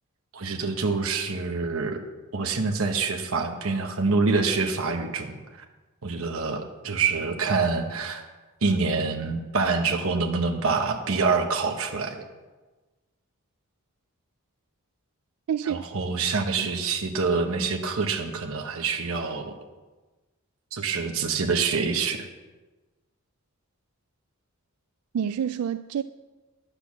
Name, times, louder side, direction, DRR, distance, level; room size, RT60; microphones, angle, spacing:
voice 1, 0.3-2.0 2.3-5.4 6.0-8.2 8.6-12.2 15.7-19.5 20.7-22.3, right 4 dB, 65° right, 0.9 m, -26 dB
voice 2, 15.5-15.8 16.6-16.7 25.1-26.0, right 8 dB, 85° right, 0.3 m, -28 dB
10.5 x 6.7 x 7.3 m
head